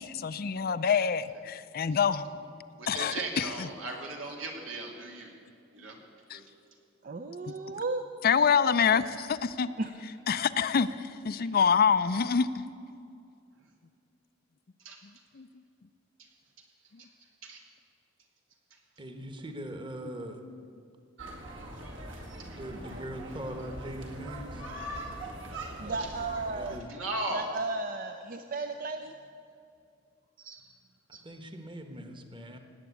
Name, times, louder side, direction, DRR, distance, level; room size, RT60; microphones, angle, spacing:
voice 1, 0.0-2.3 2.9-3.5 6.3-6.4 8.2-9.7 10.3-12.6 15.4-15.5, left 6 dB, 50° left, 13 dB, 0.5 m, -26 dB
voice 2, 2.8-5.3 5.7-6.0 6.3-6.4 11.3-11.6 14.8-15.0 17.0-17.1 17.4-17.6 18.7-18.8 22.3-22.6 26.9-27.5 30.4-30.7 31.1-31.2, right 2 dB, 90° right, 1 dB, 2.7 m, -38 dB
voice 3, 7.0-8.0 9.8-9.9 25.8-26.8 27.3-29.1, right 3 dB, 45° right, 7 dB, 0.6 m, -34 dB
voice 4, 19.0-20.4 22.6-24.6 26.5-26.9 31.2-32.6, right 1 dB, 25° right, 5 dB, 1.2 m, -41 dB
sound 1, 21.2-26.8, right 1 dB, 70° right, 2.2 m, -41 dB
18.5 x 8.9 x 8.3 m, 2.5 s
head